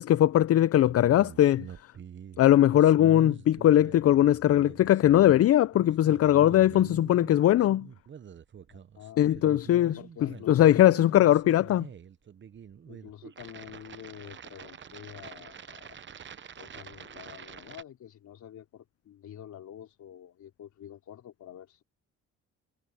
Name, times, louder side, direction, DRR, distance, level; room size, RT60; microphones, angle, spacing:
voice 1, 0.0-1.7 2.4-7.9 9.2-10.0 10.5-11.9, left 12 dB, 50° left, 0.5 m, -20 dB
sound 1, 0.8-17.8, right 8 dB, 40° right, 0.9 m, -46 dB
voice 2, 8.7-9.2 10.0-10.9 12.8-16.0 16.6-21.8, left 10 dB, 70° left, 4.0 m, -47 dB
cardioid pair, 90°, 30 cm